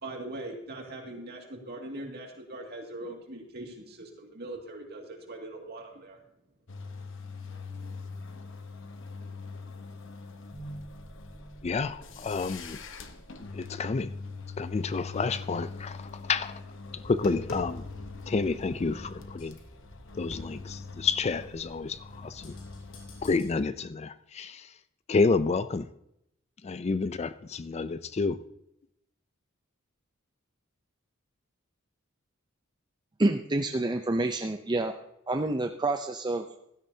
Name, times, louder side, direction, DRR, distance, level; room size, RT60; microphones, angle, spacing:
voice 1, 0.0-6.2, right 2 dB, 50° right, 1 dB, 2.2 m, -41 dB
sound 1, 6.7-23.3, left 4 dB, 65° left, 1.0 m, -43 dB
sound 2, 10.5-22.6, right 1 dB, ahead, 2.2 m, -52 dB
voice 2, 11.6-12.8 13.5-14.1 14.6-16.6 16.9-17.8 18.3-19.6 20.1-22.5 23.2-24.7 25.1-25.9 26.6-28.4, left 4 dB, 30° left, 14 dB, 0.4 m, -29 dB
Tap, 16.8-23.5, left 1 dB, 85° left, 3.0 m, -46 dB
voice 3, 33.2-34.9 35.3-36.4, right 2 dB, 20° right, 5 dB, 0.5 m, -28 dB
15.5 x 12.5 x 2.8 m, 0.79 s
head